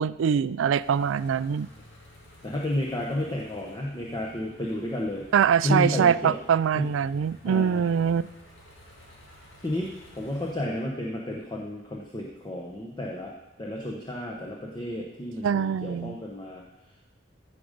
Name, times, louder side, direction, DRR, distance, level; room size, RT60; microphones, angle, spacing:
voice 1, 0.0-1.7 5.3-8.3 15.4-16.2, right 7 dB, 75° right, 18 dB, 0.3 m, -23 dB
sound 1, 0.8-10.6, left 1 dB, 70° left, 2.5 m, -53 dB
voice 2, 2.4-5.2 5.6-6.3 6.7-6.9 7.4-7.8 9.6-16.6, left 1 dB, 20° left, -2 dB, 1.0 m, -31 dB
15.5 x 5.3 x 5.1 m, 0.98 s
head